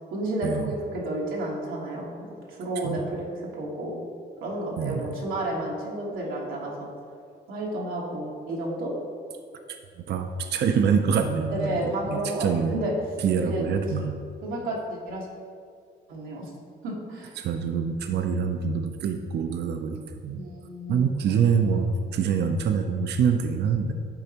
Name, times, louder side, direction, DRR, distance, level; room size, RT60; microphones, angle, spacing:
voice 1, 0.1-2.1 2.5-3.2 3.5-4.0 4.4-6.9 7.5-8.9 11.5-12.9 13.4-13.6 14.4-15.3 16.1-16.5 16.8-17.3 20.3-21.9, right 1 dB, 90° right, -4 dB, 1.3 m, -31 dB
voice 2, 4.8-5.2 10.1-12.8 13.2-14.1 17.4-20.4 20.9-23.9, right 6 dB, 60° right, 6 dB, 0.5 m, -25 dB
9.9 x 4.0 x 2.9 m, 2.2 s
cardioid pair, 90°, 20 cm